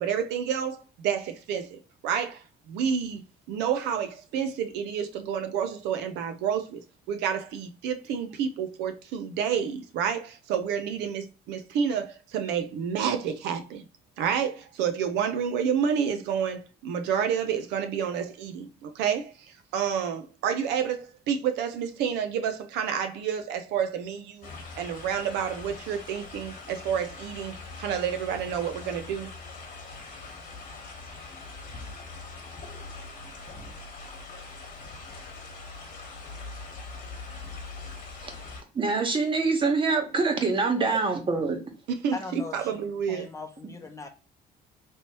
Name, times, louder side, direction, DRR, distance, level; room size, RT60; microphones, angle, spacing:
voice 1, 0.0-3.2 3.5-6.8 7.1-13.8 14.2-19.3 19.7-24.5 24.8-29.3 41.9-43.3, right 7 dB, 85° right, 0.5 m, -29 dB
sound 1, 24.4-38.6, left 3 dB, 50° left, 1.2 m, -42 dB
voice 2, 38.7-41.6, right 4 dB, 30° right, 0.9 m, -25 dB
voice 3, 42.1-42.8 43.1-44.1, left 2 dB, 20° left, 0.7 m, -38 dB
3.1 x 2.9 x 2.9 m
cardioid pair, 110°, 17 cm